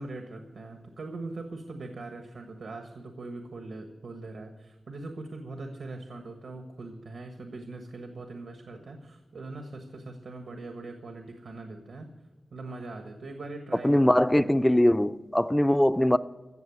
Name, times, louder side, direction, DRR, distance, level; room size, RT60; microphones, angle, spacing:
voice 1, 0.0-12.1 12.5-14.5, right 2 dB, 80° right, 1.4 m, -41 dB
voice 2, 13.8-16.2, left 1 dB, 10° left, 0.4 m, -21 dB
15.5 x 7.1 x 9.5 m
wide cardioid pair, 100°, 0 cm